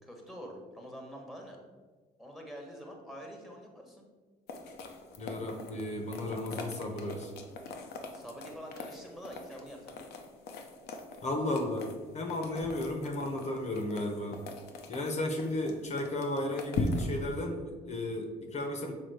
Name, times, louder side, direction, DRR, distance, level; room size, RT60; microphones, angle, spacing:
voice 1, 0.0-1.6 2.2-4.0 8.1-10.0, equal, ahead, 1 dB, 1.3 m, -46 dB
sound 1, 4.5-17.4, left 3 dB, 70° left, 0.8 m, -41 dB
voice 2, 5.2-7.3 11.2-14.4 14.9-18.9, left 1 dB, 40° left, 3 dB, 1.1 m, -34 dB
6.5 x 3.6 x 4.8 m, 1.4 s
cardioid pair, 110°, 17 cm